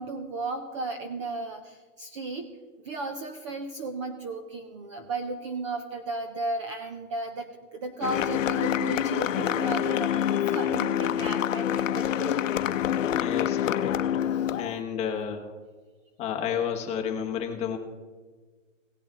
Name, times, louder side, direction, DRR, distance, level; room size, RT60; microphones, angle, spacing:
voice 1, 0.0-2.5 2.8-12.6 14.3-14.5, right 2 dB, 25° right, 6 dB, 0.5 m, -35 dB
sound 1, 8.0-14.8, left 10 dB, 75° left, 0.7 m, -26 dB
voice 2, 13.1-13.9 14.5-15.4 16.2-17.8, left 8 dB, 15° left, 2 dB, 1.1 m, -31 dB
17.5 x 7.0 x 3.7 m, 1.4 s
hypercardioid pair, 155°, 38 cm